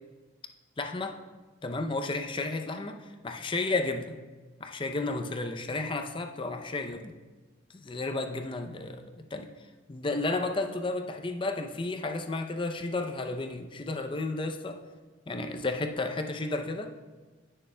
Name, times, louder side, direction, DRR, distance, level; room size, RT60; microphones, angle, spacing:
voice 1, 0.8-1.2 1.6-4.2 4.6-7.1 7.7-9.5 9.9-14.8 15.3-16.9, left 2 dB, 25° left, 5 dB, 0.5 m, -32 dB
16.5 x 6.5 x 2.2 m, 1.3 s
head